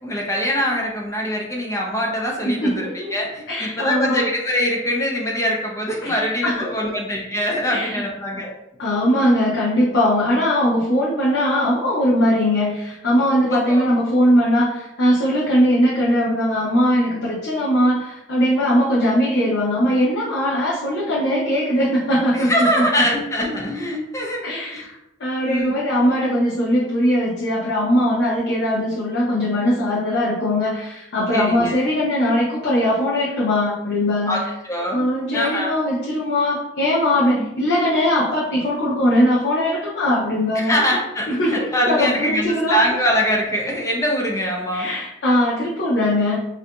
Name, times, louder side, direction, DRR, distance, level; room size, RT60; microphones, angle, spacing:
voice 1, 0.0-8.5 13.5-13.8 22.3-24.4 24.7-24.8 25.4-25.7 31.3-31.8 34.3-35.0 35.3-35.7 37.4-37.5 40.5-44.9, equal, 15° left, -1 dB, 0.4 m, -23 dB
voice 2, 2.4-3.1 3.5-4.2 6.0-6.9 7.7-8.0 8.8-22.8 24.4-24.9 25.2-34.4 34.9-40.7 41.3-42.8 44.7-46.5, equal, 85° left, -6 dB, 0.6 m, -20 dB
2.7 x 2.5 x 2.2 m, 0.88 s
head